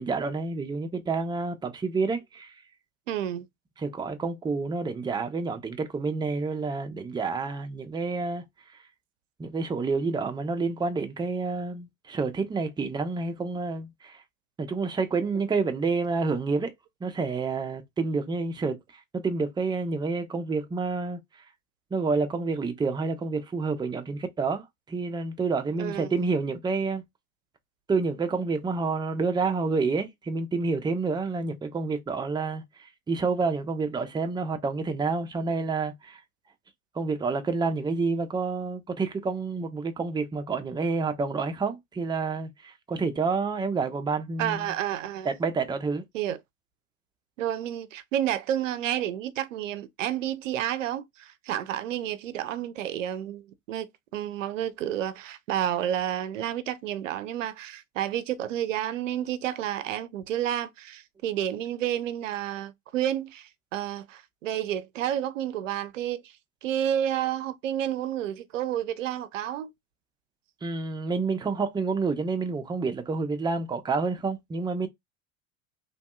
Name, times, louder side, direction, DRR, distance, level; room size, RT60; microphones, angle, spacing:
voice 1, 0.0-2.5 3.8-8.4 9.4-14.2 14.6-16.7 17.0-18.8 19.1-21.2 21.9-27.0 27.9-36.2 36.9-44.7 45.2-46.0 70.6-74.9, right 4 dB, 10° right, 0.6 m, -29 dB
voice 2, 3.1-3.5 25.8-26.1 44.4-45.3 46.1-46.4 47.4-66.3 66.6-69.7, right 11 dB, 85° right, 0.5 m, -30 dB
3.0 x 2.6 x 2.2 m
hypercardioid pair, 80°, 37 cm